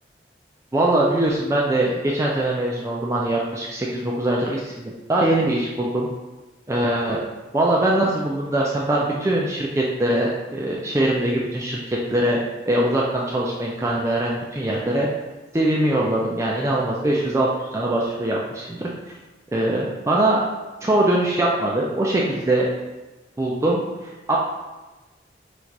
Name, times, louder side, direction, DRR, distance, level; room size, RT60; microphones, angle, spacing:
voice 1, 0.7-6.1 6.7-7.2 7.5-12.4 12.7-15.1 15.5-18.9 19.5-20.4 20.8-22.7 23.4-24.4, right 1 dB, 15° right, -4 dB, 0.4 m, -22 dB
4.0 x 2.4 x 4.5 m, 1.2 s
head